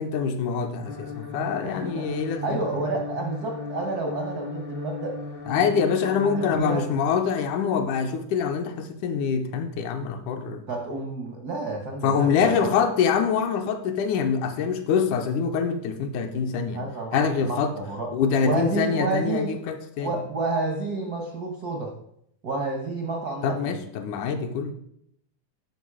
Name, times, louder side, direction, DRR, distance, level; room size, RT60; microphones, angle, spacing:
voice 1, 0.0-2.6 5.5-10.6 12.0-16.8 17.1-17.7 18.1-20.1 23.4-24.7, left 6 dB, 80° left, 6 dB, 2.3 m, -25 dB
sound 1, 0.8-6.6, left 3 dB, 55° left, 0.6 m, -36 dB
voice 2, 1.6-5.2 6.3-6.8 10.7-12.7 16.7-18.1 18.4-19.5 20.0-21.9 22.4-23.8, right 3 dB, 80° right, 1 dB, 0.8 m, -30 dB
12.0 x 4.7 x 4.9 m, 0.73 s
omnidirectional pair, 3.6 m